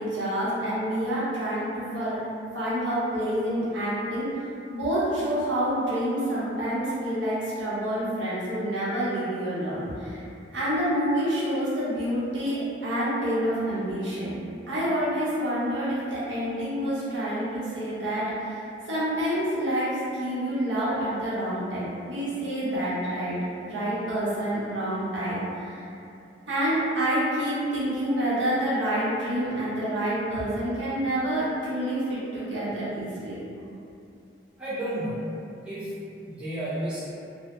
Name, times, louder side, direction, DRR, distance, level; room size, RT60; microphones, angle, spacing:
voice 1, 0.0-2.2 2.5-4.4 4.7-10.2 10.5-14.4 14.7-23.4 23.7-25.9 26.5-33.4, right 1 dB, 90° right, -10 dB, 0.8 m, -28 dB
voice 2, 34.6-35.3 35.6-37.1, right 1 dB, 5° right, -11 dB, 0.4 m, -32 dB
2.1 x 2.0 x 2.9 m, 2.6 s
head